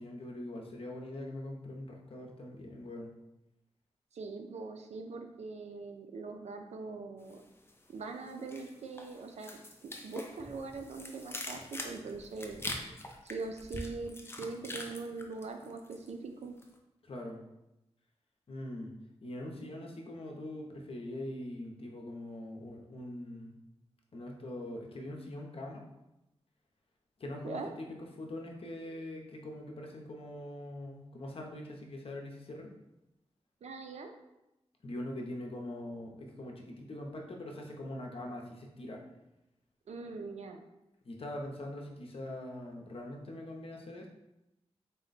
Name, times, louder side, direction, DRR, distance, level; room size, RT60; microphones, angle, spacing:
voice 1, 0.0-3.1 17.0-17.4 18.5-18.9 19.2-23.5 24.1-25.8 27.2-32.7 34.8-39.0 41.0-44.1, left 1 dB, 60° left, 1 dB, 0.7 m, -42 dB
voice 2, 4.1-7.4 7.9-12.6 13.2-14.1 14.4-16.6 27.4-27.7 33.6-34.1 39.9-40.6, right 4 dB, 80° right, 5 dB, 0.4 m, -42 dB
sound 1, 7.3-7.9 8.2-16.1 16.4-16.7, left 1 dB, 20° left, 0.5 m, -44 dB
4.0 x 2.1 x 3.9 m, 0.92 s
wide cardioid pair, 90°, 11 cm